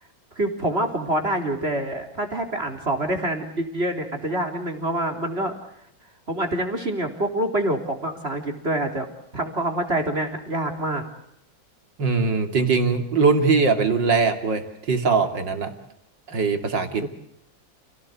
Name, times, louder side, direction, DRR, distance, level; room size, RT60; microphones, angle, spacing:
voice 1, 0.4-5.6 6.3-9.1 9.3-11.0 17.0-17.1, right 1 dB, 30° right, 5 dB, 4.0 m, -26 dB
voice 2, 12.0-15.7 16.3-17.1, right 4 dB, 65° right, 7 dB, 3.3 m, -21 dB
30.0 x 18.0 x 8.4 m, 0.77 s
omnidirectional pair, 2.1 m